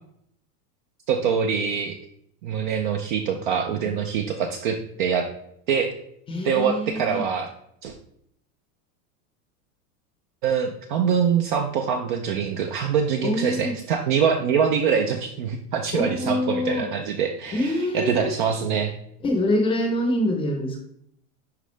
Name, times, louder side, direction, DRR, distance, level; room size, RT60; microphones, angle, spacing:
voice 1, 1.1-2.0 2.4-5.3 5.7-5.9 6.4-7.5 7.8-7.9 10.4-18.9, right 7 dB, 35° right, 5 dB, 0.4 m, -24 dB
voice 2, 6.3-7.3 13.2-13.8 15.9-16.9 17.5-18.2 19.2-20.8, left 1 dB, 10° left, 3 dB, 0.7 m, -25 dB
10.5 x 3.7 x 3.2 m, 0.71 s
supercardioid pair, 170°, 46 cm